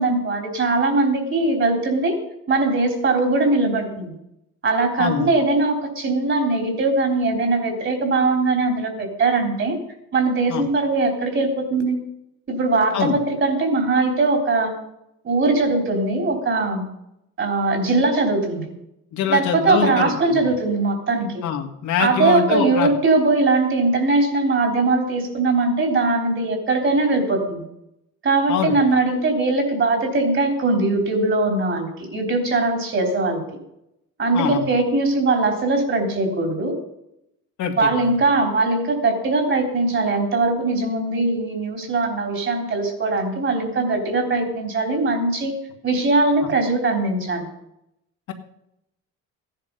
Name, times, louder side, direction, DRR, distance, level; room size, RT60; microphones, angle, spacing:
voice 1, 0.0-2.2 2.5-4.2 4.6-9.8 10.1-12.0 12.5-14.7 15.2-16.8 17.4-18.7 19.3-21.4 22.0-27.7 28.2-33.4 34.2-36.7 37.8-45.5 45.8-47.5, right 3 dB, 40° right, 5 dB, 4.0 m, -20 dB
voice 2, 19.1-20.4 21.4-22.9 28.5-28.8 34.3-34.6 37.6-38.1, left 8 dB, 70° left, 3 dB, 2.1 m, -24 dB
15.0 x 10.5 x 5.6 m, 0.82 s
cardioid pair, 105°, 31 cm